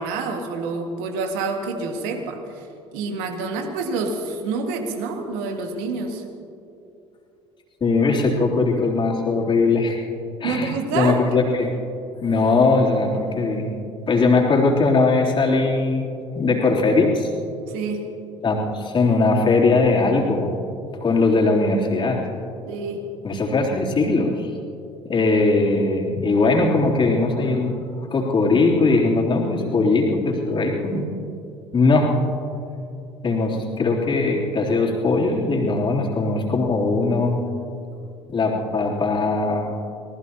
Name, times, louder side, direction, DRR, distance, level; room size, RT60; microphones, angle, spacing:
voice 1, 0.0-2.7 2.9-6.2 10.4-11.2 17.7-18.0 22.7-23.1, right 4 dB, 65° right, 4 dB, 1.9 m, -27 dB
voice 2, 7.8-10.0 10.4-11.7 12.2-13.7 14.1-16.0 16.3-17.3 18.4-20.6 21.0-22.2 23.2-24.5 25.1-31.1 31.7-32.1 33.2-37.4 38.3-39.7, left 3 dB, 30° left, -1 dB, 3.3 m, -20 dB
26.0 x 18.5 x 2.9 m, 2.7 s
figure-of-eight pair, 60°, 16 cm